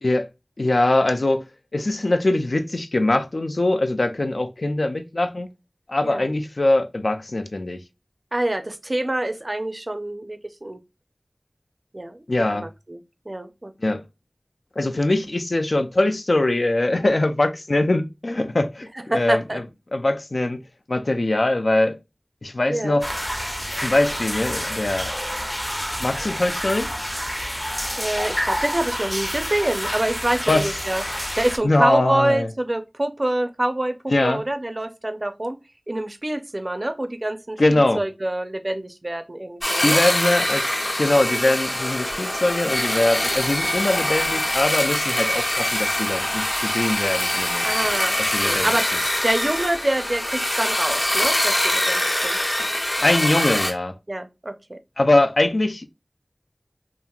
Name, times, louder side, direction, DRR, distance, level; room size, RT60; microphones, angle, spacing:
voice 1, 0.6-1.5 1.7-5.5 5.9-7.8 12.3-12.7 13.8-14.0 14.8-19.6 19.9-20.6 20.9-22.0 22.4-23.1 23.8-25.2 26.0-26.9 30.5-30.7 31.6-32.5 34.1-34.4 37.6-38.0 39.8-40.7 41.0-47.7 48.2-48.7 53.0-54.0 55.0-55.9, left 2 dB, 80° left, 0.3 m, -22 dB
voice 2, 8.3-10.8 11.9-13.7 18.9-19.6 22.7-23.0 28.0-31.0 31.4-35.6 35.9-40.0 41.3-41.5 47.6-48.2 48.4-48.9 49.2-52.4 53.0-53.3 54.1-54.8, right 1 dB, 45° right, 0.4 m, -26 dB
sound 1, 23.0-31.6, equal, 15° left, 0.5 m, -28 dB
sound 2, 39.6-53.7, left 1 dB, 55° left, 0.8 m, -23 dB
2.9 x 2.5 x 2.2 m
wide cardioid pair, 45°, 0 cm